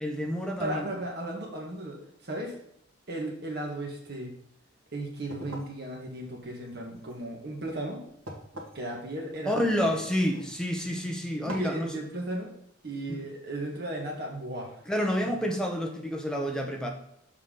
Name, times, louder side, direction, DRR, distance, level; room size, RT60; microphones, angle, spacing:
voice 1, 0.0-0.9 9.5-11.9 13.1-13.2 14.9-16.9, equal, 5° left, 1 dB, 0.8 m, -29 dB
voice 2, 0.6-2.6 3.1-4.3 4.9-8.0 8.7-10.0 11.4-12.5 12.8-14.8 15.2-15.4, right 1 dB, 50° right, 0 dB, 1.7 m, -35 dB
sound 1, 5.1-11.0 11.5-11.8, right 1 dB, 90° right, 1.7 m, -46 dB
7.0 x 4.6 x 3.8 m, 0.74 s
head